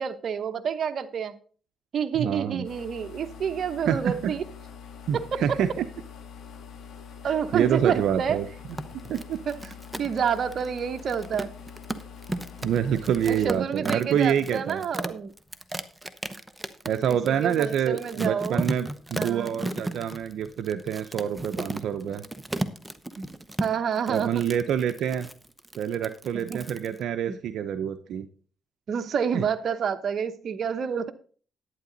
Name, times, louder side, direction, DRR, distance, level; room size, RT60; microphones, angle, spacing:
voice 1, 0.0-1.3 1.9-4.4 5.1-5.6 7.2-8.4 9.5-11.5 13.3-15.3 17.1-18.7 19.2-19.6 23.2-23.3 23.6-24.4 26.3-26.6 27.3-27.4 28.9-31.1, right 7 dB, 55° right, 0.9 m, -29 dB
voice 2, 2.2-2.7 3.9-4.3 5.1-5.8 7.5-8.5 9.1-9.4 12.6-14.8 16.9-22.2 24.1-25.3 25.7-28.3 29.3-29.4, right 9 dB, 75° right, 0.6 m, -27 dB
sound 1, 2.6-15.0, left 7 dB, 70° left, 2.3 m, -45 dB
sound 2, 8.6-27.0, right 1 dB, 5° right, 0.9 m, -34 dB
11.0 x 9.3 x 3.9 m
cardioid pair, 90°, 0 cm